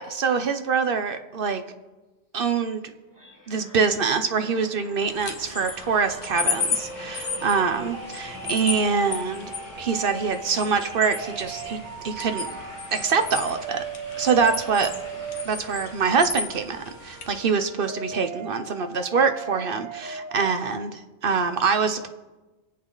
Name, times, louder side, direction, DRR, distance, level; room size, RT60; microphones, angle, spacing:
voice 1, 0.0-1.6 2.3-2.8 3.5-9.5 9.8-12.5 12.9-13.8 14.2-14.9 15.4-22.1, right 5 dB, 45° right, 8 dB, 1.0 m, -24 dB
sound 1, 3.1-16.7 17.2-17.4, equal, 15° right, 2.6 m, -44 dB
sound 2, 5.1-17.4, left 5 dB, 85° left, 1.7 m, -35 dB
sound 3, 6.5-20.9, right 6 dB, 70° right, 2.4 m, -38 dB
24.5 x 8.4 x 4.0 m, 1.2 s
omnidirectional pair, 1.4 m